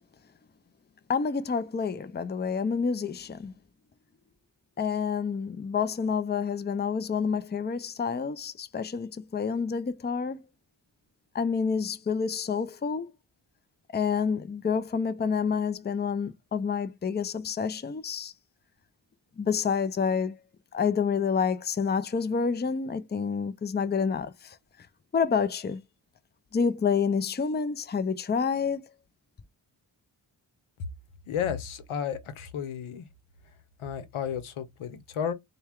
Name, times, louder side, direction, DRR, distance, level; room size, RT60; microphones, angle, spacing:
voice 1, 1.1-3.5 4.8-10.4 11.3-13.1 13.9-18.3 19.4-20.3 20.7-24.6 25.1-25.8 26.5-28.9, left 6 dB, 20° left, 0.6 m, -28 dB
voice 2, 31.3-33.1 33.8-35.3, left 8 dB, 80° left, 0.9 m, -32 dB
4.1 x 2.3 x 3.6 m
supercardioid pair, 50°, 48 cm